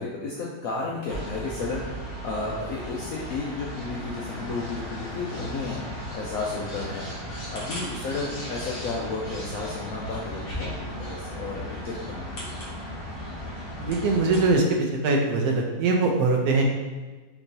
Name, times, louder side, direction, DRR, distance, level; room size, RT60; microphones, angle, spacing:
voice 1, 0.0-1.8 2.2-5.8 6.1-7.0 7.5-12.5, left 3 dB, 70° left, -4 dB, 0.9 m, -33 dB
sound 1, 1.1-14.6, equal, 40° left, 1.1 m, -36 dB
voice 2, 13.8-16.6, right 3 dB, 70° right, 1 dB, 1.0 m, -22 dB
4.5 x 3.0 x 2.6 m, 1.3 s
omnidirectional pair, 1.8 m